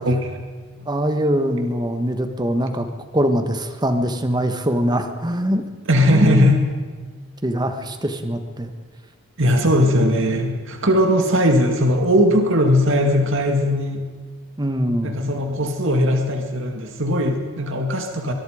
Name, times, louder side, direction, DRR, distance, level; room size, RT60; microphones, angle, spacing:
voice 1, 0.9-2.9 3.1-5.6 6.1-6.5 7.4-8.7 14.6-15.1, equal, 20° right, 7 dB, 1.5 m, -22 dB
voice 2, 5.9-6.6 9.4-14.0 15.0-18.3, equal, 60° right, 4 dB, 2.3 m, -19 dB
23.0 x 22.0 x 5.1 m, 1.5 s
head